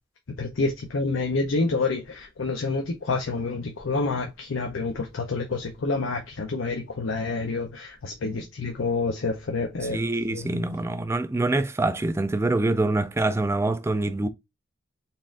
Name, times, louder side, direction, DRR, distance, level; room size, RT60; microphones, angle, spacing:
voice 1, 0.4-10.0 10.3-10.5, left 3 dB, 90° left, 0.6 m, -28 dB
voice 2, 9.8-14.3, right 2 dB, 15° right, 0.3 m, -25 dB
4.1 x 2.5 x 3.5 m
head